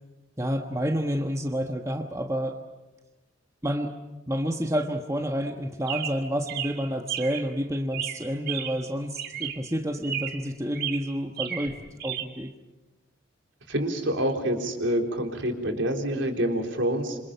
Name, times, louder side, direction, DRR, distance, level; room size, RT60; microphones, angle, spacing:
voice 1, 0.4-2.6 3.6-3.9 4.3-11.8 12.0-12.5, equal, 15° right, 4 dB, 1.2 m, -29 dB
Chirp tweet, 5.9-7.5 7.9-8.9 9.2-9.7 10.0-10.5 10.7-12.2, right 10 dB, 50° right, 2.3 m, -34 dB
voice 2, 13.7-17.2, right 1 dB, 65° right, 3 dB, 3.8 m, -27 dB
27.5 x 26.5 x 5.8 m, 1.1 s
head